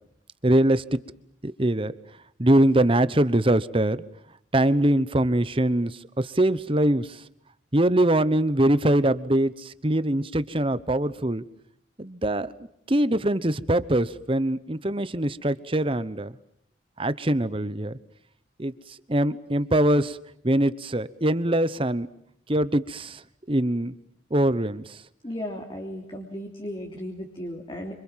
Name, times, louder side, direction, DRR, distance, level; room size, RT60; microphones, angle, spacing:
voice 1, 0.4-1.0 1.4-1.9 2.4-4.0 4.5-7.2 7.7-11.4 12.0-16.3 17.0-18.0 18.6-18.7 19.1-20.2 20.4-22.1 22.5-23.2 23.5-23.9 24.3-25.0, right 1 dB, 30° right, 15 dB, 1.0 m, -23 dB
voice 2, 25.2-27.9, equal, 25° left, 1 dB, 3.3 m, -35 dB
29.0 x 26.0 x 7.5 m, 0.70 s
head